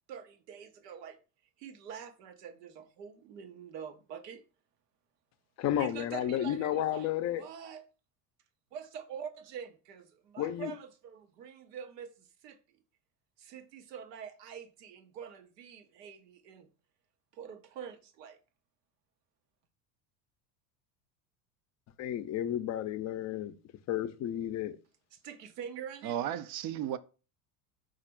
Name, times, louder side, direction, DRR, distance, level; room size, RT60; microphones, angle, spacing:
voice 1, 0.1-1.2 1.6-4.4 5.8-7.9 8.7-12.6 13.4-16.7 17.3-18.4 25.1-26.2, right 7 dB, 80° right, 0.9 m, -45 dB
voice 2, 5.6-7.4 10.4-10.7 22.0-23.6 23.9-24.8, left 11 dB, 35° left, 0.5 m, -32 dB
voice 3, 26.0-27.0, right 10 dB, 50° right, 0.5 m, -34 dB
4.0 x 2.5 x 4.5 m
hypercardioid pair, 90°, 48 cm